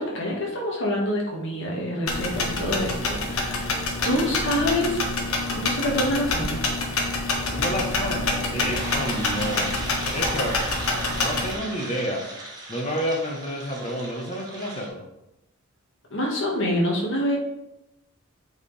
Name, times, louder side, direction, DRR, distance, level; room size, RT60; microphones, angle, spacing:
voice 1, 0.0-3.7 4.0-5.0 5.5-6.6 16.1-17.4, equal, 60° left, -2 dB, 1.8 m, -26 dB
sound 1, 2.1-11.5, left 2 dB, 80° left, 1.3 m, -27 dB
voice 2, 7.5-9.7 10.1-10.6 11.2-12.3 12.7-15.0, equal, 30° left, 1 dB, 1.1 m, -29 dB
sound 2, 8.7-14.9, right 1 dB, 20° right, 1.3 m, -36 dB
8.2 x 4.5 x 3.3 m, 0.90 s
head